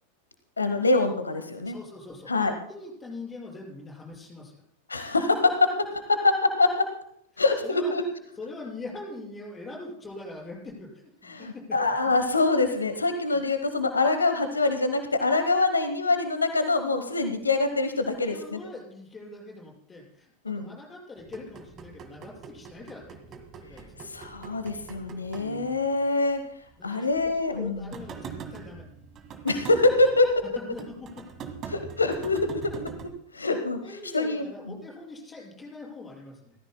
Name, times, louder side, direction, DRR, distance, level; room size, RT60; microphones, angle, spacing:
voice 1, 0.6-1.8 2.3-2.5 4.9-5.7 6.2-6.9 7.4-8.0 11.3-18.6 20.4-20.7 24.0-26.4 26.8-27.9 29.4-30.3 31.7-32.7 33.3-33.8 34.1-34.5, left 3 dB, 75° left, 9 dB, 1.0 m, -24 dB
voice 2, 1.6-4.6 7.3-7.9 8.4-11.8 14.9-15.0 18.1-24.1 25.4-26.1 26.8-28.8 30.6-31.1 33.8-36.5, left 2 dB, 15° left, -1 dB, 6.0 m, -43 dB
sound 1, 21.2-26.3 26.7-26.8 27.1-33.1, right 6 dB, 30° right, 1.7 m, -43 dB
29.0 x 14.0 x 2.2 m, 0.72 s
figure-of-eight pair, 90°, 0 cm